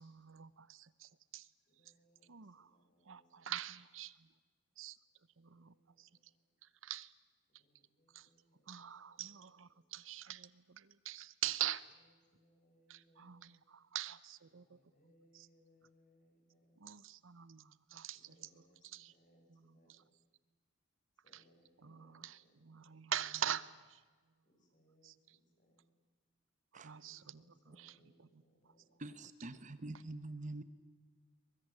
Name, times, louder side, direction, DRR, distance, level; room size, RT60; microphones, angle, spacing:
voice 1, 0.0-1.5 2.3-2.7 3.1-4.3 4.8-5.0 5.4-6.1 6.6-7.1 8.1-8.3 8.7-11.9 12.9-14.8 15.3-15.5 16.8-18.5 18.8-19.1 19.5-19.6 19.9-20.0 21.3-21.4 21.8-24.0 25.0-25.1 26.7-27.4 27.8-28.4, right 11 dB, 70° right, 0.8 m, -44 dB
voice 2, 1.7-3.6 5.4-6.4 7.5-10.2 12.0-13.5 14.4-16.8 18.1-20.1 21.2-23.0 24.4-25.9 26.9-29.0, equal, 40° left, 5.6 m, -72 dB
voice 3, 29.0-30.6, right 2 dB, 35° right, 0.9 m, -45 dB
23.0 x 21.5 x 9.7 m
head